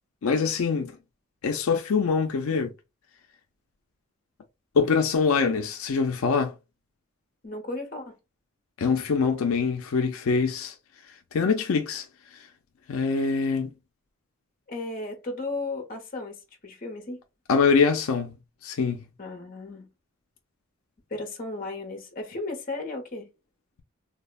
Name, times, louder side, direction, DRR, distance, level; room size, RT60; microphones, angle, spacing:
voice 1, 0.2-1.0 1.4-2.7 4.7-6.5 8.8-10.8 11.3-12.1 12.3-12.5 12.9-13.7 17.5-18.4 18.6-19.1, left 5 dB, 80° left, 0.4 m, -24 dB
voice 2, 7.4-8.1 14.7-17.2 19.2-19.9 21.1-23.3, left 2 dB, 40° left, 0.7 m, -35 dB
3.4 x 2.0 x 2.2 m
head